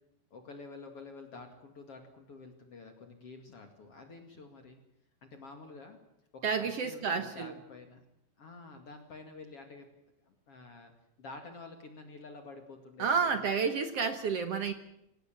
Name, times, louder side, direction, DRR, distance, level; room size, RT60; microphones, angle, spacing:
voice 1, 0.3-4.8 5.2-6.0 6.3-8.0 8.4-9.9 10.5-10.9 11.2-13.7, left 3 dB, 45° left, 4 dB, 2.9 m, -49 dB
voice 2, 6.4-7.5 13.0-14.7, right 5 dB, 60° right, 8 dB, 1.8 m, -30 dB
26.0 x 17.5 x 7.5 m, 0.80 s
omnidirectional pair, 4.1 m